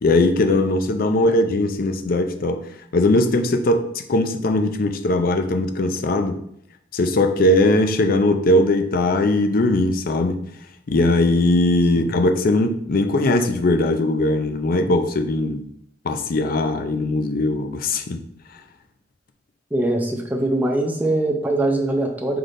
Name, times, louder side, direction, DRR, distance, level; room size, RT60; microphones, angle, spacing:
voice 1, 0.0-2.6 2.9-6.4 6.9-10.4 10.9-15.6 16.0-18.2, left 2 dB, 50° left, 6 dB, 0.4 m, -19 dB
voice 2, 19.7-22.4, right 1 dB, 10° right, 0 dB, 0.6 m, -22 dB
5.7 x 3.3 x 2.6 m, 0.72 s
head